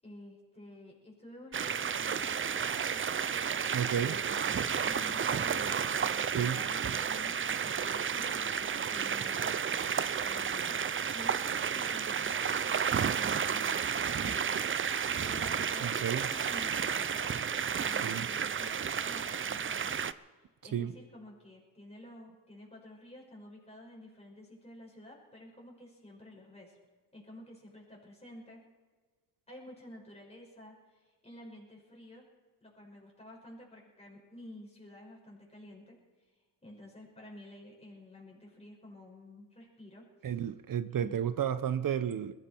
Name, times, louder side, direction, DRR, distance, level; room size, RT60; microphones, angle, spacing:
voice 1, 0.0-3.1 3.9-9.6 10.2-10.8 11.1-14.6 15.2-17.4 17.7-20.0 20.4-26.8 27.1-28.6 29.5-32.3 32.6-36.0 36.6-40.4 41.0-41.2, left 1 dB, 15° left, -3 dB, 5.9 m, -51 dB
sound 1, 1.5-20.1, right 7 dB, 35° right, 0.5 m, -32 dB
voice 2, 3.7-4.2 6.3-6.6 15.8-16.3 18.0-18.3 20.7-20.9 40.2-42.3, right 9 dB, 65° right, 13 dB, 0.8 m, -32 dB
21.5 x 14.5 x 4.5 m, 1.4 s
cardioid pair, 100°, 36 cm